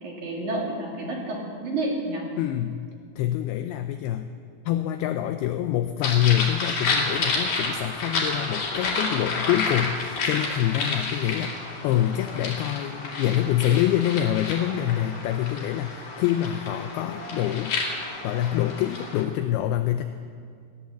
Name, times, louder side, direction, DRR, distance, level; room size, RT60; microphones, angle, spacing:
voice 1, 0.0-2.3, right 2 dB, 50° right, -2 dB, 2.9 m, -30 dB
voice 2, 2.4-2.9 3.2-4.3 4.7-17.8 18.2-20.0, left 12 dB, 90° left, 8 dB, 2.2 m, -26 dB
sound 1, 6.0-19.2, left 3 dB, 50° left, 3.6 m, -30 dB
18.0 x 10.5 x 7.5 m, 2.2 s
omnidirectional pair, 5.2 m